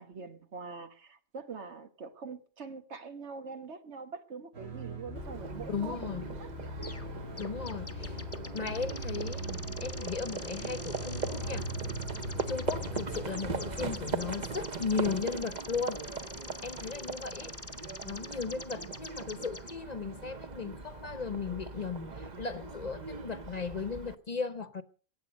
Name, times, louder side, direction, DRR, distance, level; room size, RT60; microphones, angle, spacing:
voice 1, 0.0-6.9 18.4-19.0, right 5 dB, 85° right, 1.7 m, -44 dB
sound 1, 4.5-15.3, equal, 65° right, 2.8 m, -41 dB
Livestock farm animals working animals, 5.2-24.1, right 4 dB, 45° right, 1.0 m, -40 dB
voice 2, 5.7-6.3 7.4-8.2 8.5-11.7 12.5-16.0 16.6-17.5 18.0-24.8, left 5 dB, 40° left, 0.8 m, -36 dB
sound 2, 6.8-7.1 7.4-19.7, left 3 dB, 20° left, 0.5 m, -46 dB
22.5 x 8.7 x 5.3 m
omnidirectional pair, 1.1 m